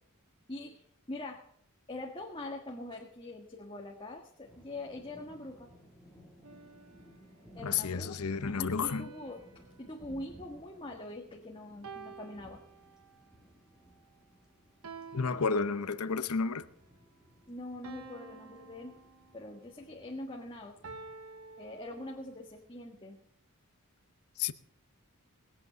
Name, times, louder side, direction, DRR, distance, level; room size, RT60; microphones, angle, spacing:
voice 1, 0.5-0.8 1.1-1.4 1.9-5.7 7.5-8.2 8.4-9.4 9.8-12.6 17.5-18.9 19.3-20.8 21.6-23.2, left 2 dB, 25° left, 1.6 m, -43 dB
sound 1, 4.4-22.6, equal, 5° right, 3.0 m, -58 dB
sound 2, 6.4-7.7 8.8-11.3 11.8-13.3 14.8-16.3 17.8-19.7 20.8-22.5, right 4 dB, 85° right, 1.1 m, -51 dB
voice 2, 7.6-9.1 15.1-16.6 24.4-24.5, left 5 dB, 85° left, 0.8 m, -31 dB
20.5 x 8.4 x 6.7 m
head